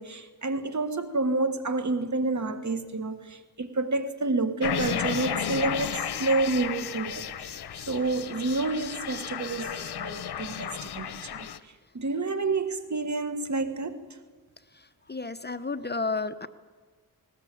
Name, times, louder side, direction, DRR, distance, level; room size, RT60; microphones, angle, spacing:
voice 1, 0.0-7.5 7.9-11.5 11.9-14.0, right 3 dB, 50° right, 1.7 m, -29 dB
sound 1, 4.6-11.6, left 9 dB, 85° left, 0.9 m, -33 dB
voice 2, 15.1-16.5, left 3 dB, 25° left, 0.8 m, -31 dB
19.5 x 19.0 x 8.5 m
cardioid pair, 70°, 38 cm